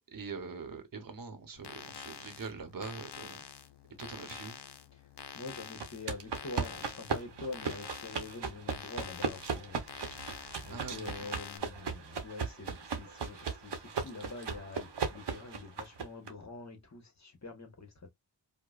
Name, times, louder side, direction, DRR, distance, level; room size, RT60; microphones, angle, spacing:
voice 1, 0.1-3.4 4.0-4.6 10.7-11.3, right 4 dB, 55° right, 0.9 m, -43 dB
sound 1, 1.6-11.6, left 8 dB, 70° left, 0.6 m, -48 dB
voice 2, 5.3-18.1, left 3 dB, 40° left, 1.1 m, -45 dB
sound 2, 5.8-16.3, right 5 dB, 80° right, 0.9 m, -37 dB
4.8 x 2.1 x 2.3 m
wide cardioid pair, 80°, 41 cm